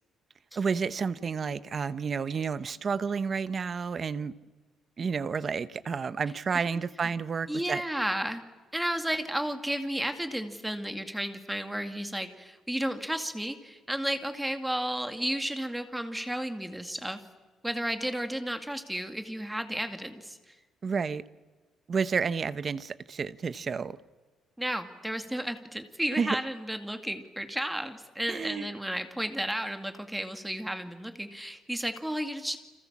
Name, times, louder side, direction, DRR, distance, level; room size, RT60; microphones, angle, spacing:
voice 1, 0.5-4.3 5.0-7.8 20.8-21.2 21.9-24.0 26.2-26.4 28.3-28.7, right 5 dB, 30° right, 1.0 m, -30 dB
voice 2, 7.5-8.4 8.7-17.2 17.6-20.5 24.6-32.6, right 1 dB, 5° right, 2.2 m, -33 dB
30.0 x 26.5 x 7.4 m
cardioid pair, 150°, 0 cm